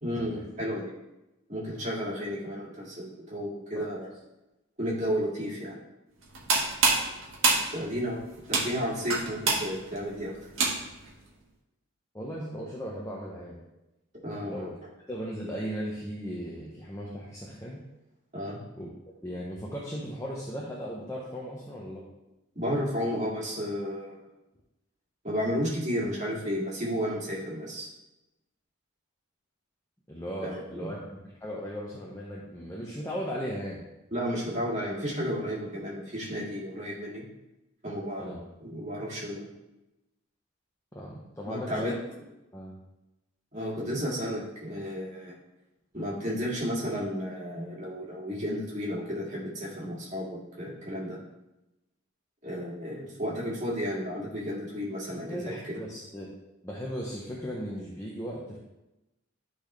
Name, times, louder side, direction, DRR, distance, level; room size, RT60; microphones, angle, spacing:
voice 1, 0.0-0.9 1.5-4.1 4.8-5.8 7.7-8.2 8.5-10.3 14.2-14.7 18.3-18.6 22.6-24.2 25.2-27.9 30.4-30.9 34.1-37.2 37.8-39.5 41.5-41.9 43.5-45.3 45.9-51.2 52.4-55.7, equal, 35° right, -5 dB, 2.1 m, -32 dB
sound 1, 6.2-11.1, right 4 dB, 75° right, 1.6 m, -27 dB
voice 2, 12.1-13.6 14.4-14.7 15.1-17.8 18.8-18.9 19.2-22.0 30.1-31.0 31.4-33.8 38.2-38.4 40.9-41.9 42.5-42.8 55.3-56.3 56.6-58.6, equal, 15° left, -4 dB, 0.9 m, -37 dB
11.0 x 4.1 x 3.3 m, 0.96 s
head